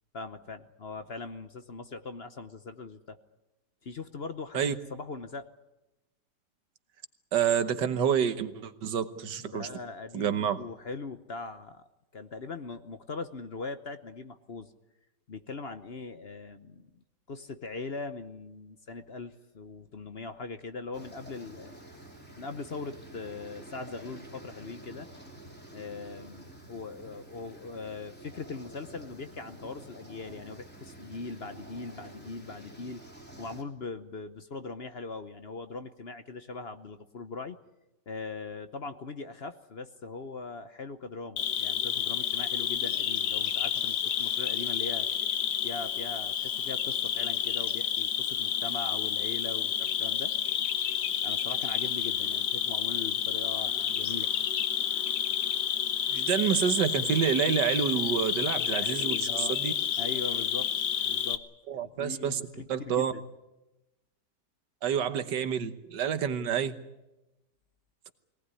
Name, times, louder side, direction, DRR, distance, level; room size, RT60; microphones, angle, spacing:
voice 1, 0.1-3.2 3.8-4.6 4.9-5.5 9.4-11.8 12.1-14.7 15.3-21.8 22.4-25.1 25.7-33.0 33.4-37.6 38.1-45.1 45.6-50.3 51.2-54.3 58.4-59.6 60.0-60.7 61.0-61.4 61.7-63.2, left 4 dB, 45° left, 10 dB, 1.0 m, -40 dB
voice 2, 7.3-9.7 10.1-10.6 56.1-59.7 61.7-62.4 62.7-63.1 64.8-66.7, right 8 dB, 90° right, 11 dB, 1.8 m, -28 dB
sound 1, 20.9-33.6, right 1 dB, 5° left, 3.4 m, -49 dB
Cricket, 41.4-61.4, left 9 dB, 75° left, 1.6 m, -30 dB
22.0 x 18.5 x 9.7 m, 0.98 s
omnidirectional pair, 1.8 m